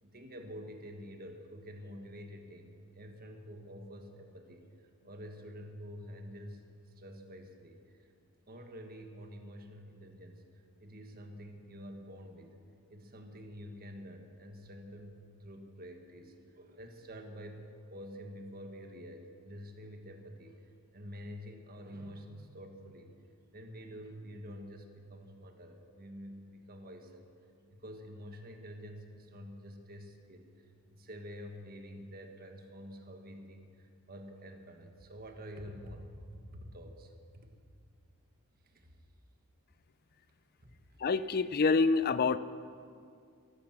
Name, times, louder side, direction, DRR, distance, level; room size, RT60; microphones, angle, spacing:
voice 1, 0.0-4.6 5.0-6.6 6.9-8.1 8.5-12.5 12.9-23.1 23.5-27.3 27.7-37.5 38.6-38.9 40.6-40.7, equal, 45° right, 4 dB, 1.6 m, -48 dB
voice 2, 41.0-42.4, left 4 dB, 45° left, 14 dB, 0.4 m, -27 dB
14.5 x 11.5 x 7.5 m, 2.3 s
head